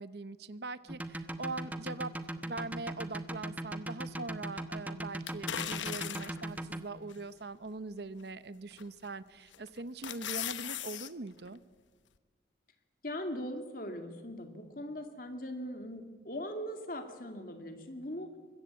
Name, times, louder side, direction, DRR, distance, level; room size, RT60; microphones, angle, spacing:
voice 1, 0.0-11.6, right 3 dB, 60° right, 15 dB, 0.8 m, -42 dB
sound 1, 0.9-6.8, right 1 dB, 10° right, 0.9 m, -38 dB
sound 2, 5.3-6.5 7.1-7.2 8.8-9.1 9.5-11.1 11.5-11.6, left 10 dB, 85° left, 1.0 m, -38 dB
voice 2, 13.0-18.3, equal, 50° left, 6 dB, 2.5 m, -40 dB
23.5 x 21.5 x 8.5 m, 1.5 s
head